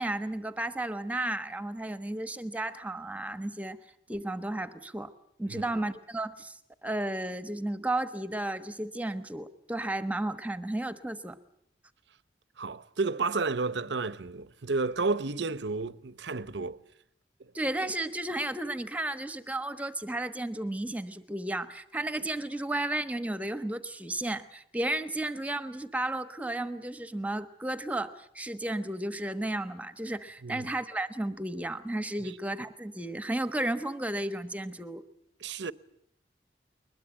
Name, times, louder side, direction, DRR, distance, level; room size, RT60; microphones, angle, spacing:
voice 1, 0.0-3.8 4.1-5.1 5.4-11.4 17.5-35.0, right 1 dB, 10° right, 1.2 m, -33 dB
voice 2, 12.6-16.8 17.4-17.5 30.4-30.7 32.2-32.3 35.4-35.7, right 3 dB, 75° right, 0.9 m, -31 dB
21.5 x 21.0 x 9.0 m
head